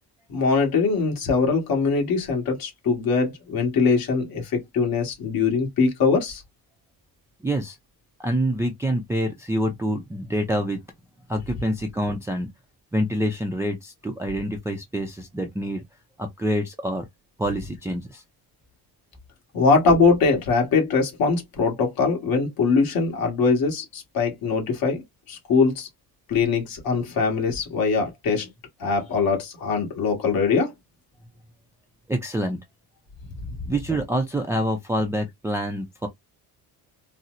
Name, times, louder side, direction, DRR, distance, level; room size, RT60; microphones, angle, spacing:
voice 1, 0.3-6.4 19.5-25.0 25.3-25.9 26.3-28.5 28.8-30.7, left 4 dB, 60° left, 1.6 m, -22 dB
voice 2, 7.4-7.8 8.2-10.8 11.3-12.5 12.9-15.8 16.2-17.0 17.4-18.2 32.1-32.6 33.6-36.1, equal, 5° right, 0.4 m, -26 dB
4.1 x 2.0 x 2.4 m
cardioid pair, 140°, 40 cm